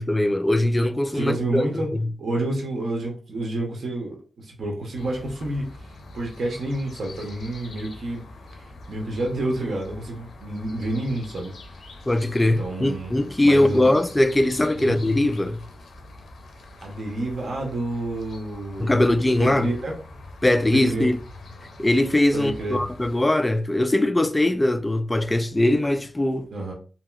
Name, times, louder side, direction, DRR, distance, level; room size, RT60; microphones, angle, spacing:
voice 1, 0.0-2.1 12.1-15.6 18.8-19.7 20.4-21.2 21.8-26.5, left 1 dB, 20° left, 0.3 m, -21 dB
voice 2, 1.1-1.9 2.2-8.2 8.5-11.5 12.6-13.1 13.4-13.9 14.8-15.0 16.8-19.9 20.7-21.1 22.3-22.8 26.5-26.7, right 2 dB, 70° right, 0.8 m, -29 dB
sound 1, 5.0-23.2, left 2 dB, 80° left, 0.5 m, -44 dB
2.9 x 2.8 x 2.3 m
cardioid pair, 70°, 0 cm